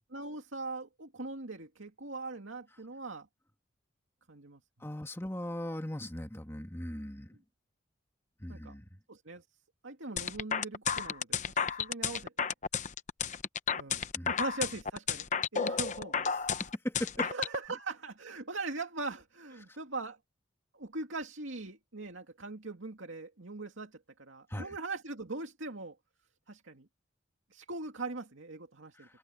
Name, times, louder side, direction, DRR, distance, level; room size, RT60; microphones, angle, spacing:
voice 1, 0.1-3.3 4.3-4.6 8.5-8.7 9.1-9.4 9.8-12.5 13.7-15.3 15.5-16.3 17.2-20.2 20.7-26.0 26.5-26.9 27.5-29.1, right 3 dB, 80° right, 2.4 m, -41 dB
voice 2, 4.8-7.4 8.4-8.9 14.2-14.3 16.3-16.5 16.8-17.3 19.7-19.8 24.5-24.8 28.9-29.2, left 1 dB, 15° left, 2.3 m, -39 dB
sound 1, 10.2-17.6, left 7 dB, 35° left, 0.8 m, -32 dB
head